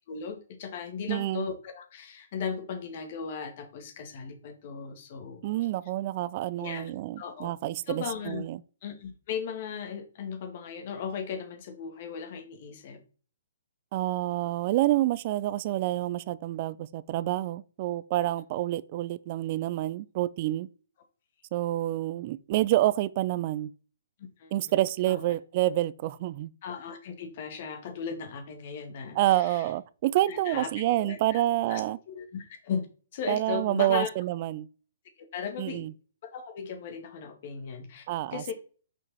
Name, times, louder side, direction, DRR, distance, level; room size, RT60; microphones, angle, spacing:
voice 1, 0.1-5.4 6.6-6.9 7.2-7.5 7.9-8.5 8.8-13.0 24.4-24.8 25.1-25.2 26.6-29.6 30.3-31.4 31.7-31.8 32.1-32.9 33.1-34.1 35.3-35.9 36.2-38.5, left 6 dB, 45° left, 1.8 m, -37 dB
voice 2, 1.1-1.5 5.4-8.6 13.9-20.7 21.5-23.7 24.5-26.5 29.1-32.0 33.3-34.7 35.6-35.9 38.1-38.5, right 15 dB, 40° right, 0.4 m, -28 dB
6.4 x 5.3 x 4.1 m
hypercardioid pair, 150°, 0 cm